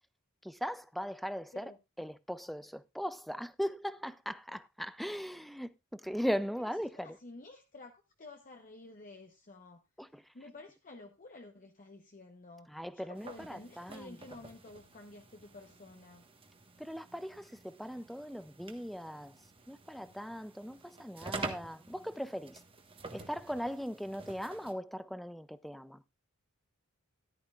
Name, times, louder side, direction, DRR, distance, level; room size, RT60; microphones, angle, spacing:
voice 1, 0.4-1.7 2.0-7.2 10.0-10.3 12.7-14.2 16.8-19.3 19.7-22.6 23.1-26.0, equal, ahead, 0.5 m, -39 dB
voice 2, 6.9-9.8 10.3-12.7 12.9-16.3, left 2 dB, 40° left, 1.0 m, -51 dB
sound 1, 13.2-24.7, right 3 dB, 25° right, 1.3 m, -48 dB
14.0 x 11.0 x 2.4 m
head